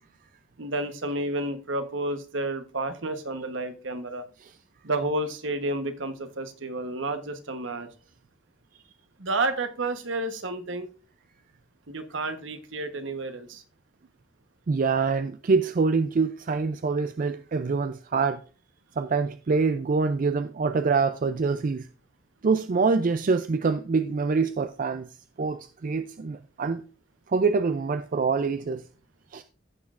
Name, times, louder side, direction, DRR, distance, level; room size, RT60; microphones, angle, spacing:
voice 1, 0.6-4.2 4.8-7.9 9.2-10.9 11.9-13.6, right 2 dB, 65° right, 1.1 m, -30 dB
voice 2, 14.7-18.4 19.0-21.9 22.4-25.1 25.4-26.8 27.3-28.8 29.3-29.4, right 4 dB, 45° right, 0.4 m, -25 dB
15.5 x 6.2 x 2.5 m
head